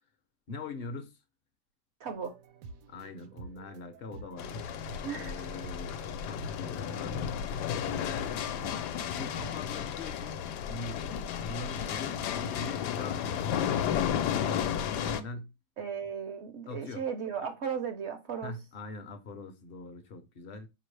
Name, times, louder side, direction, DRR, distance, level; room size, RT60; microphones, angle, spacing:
voice 1, 0.5-1.2 2.9-4.7 5.1-7.2 7.7-8.2 9.1-10.4 10.7-11.1 11.4-13.8 14.4-15.5 16.7-17.1 18.4-20.7, left 3 dB, 60° left, 0.6 m, -42 dB
voice 2, 2.0-2.3 5.0-5.3 15.8-18.5, right 7 dB, 60° right, 0.7 m, -36 dB
sound 1, 2.1-9.9, right 4 dB, 80° right, 1.2 m, -50 dB
sound 2, 4.4-15.2, left 9 dB, 80° left, 1.1 m, -33 dB
4.8 x 3.0 x 3.2 m
omnidirectional pair, 1.8 m